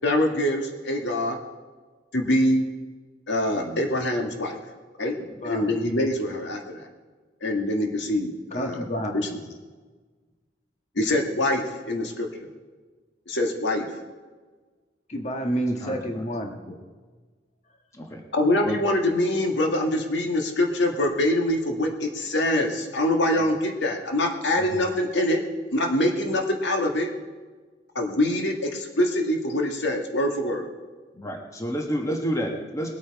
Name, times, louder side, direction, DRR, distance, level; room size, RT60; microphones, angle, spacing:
voice 1, 0.0-1.4 2.1-2.7 3.3-4.6 5.0-5.2 5.4-6.9 7.4-8.8 9.1-9.3 11.0-12.5 13.3-13.9 18.3-25.4 25.7-27.1 28.0-30.7, left 1 dB, 70° left, 2 dB, 1.7 m, -24 dB
voice 2, 5.4-5.8 8.5-9.3 15.1-16.6, equal, 40° left, 3 dB, 1.5 m, -29 dB
voice 3, 15.8-16.2 16.7-16.8 17.9-18.2 18.6-18.8 24.6-24.9 31.1-32.9, equal, 15° left, 1 dB, 1.3 m, -31 dB
20.5 x 8.6 x 4.7 m, 1.4 s
head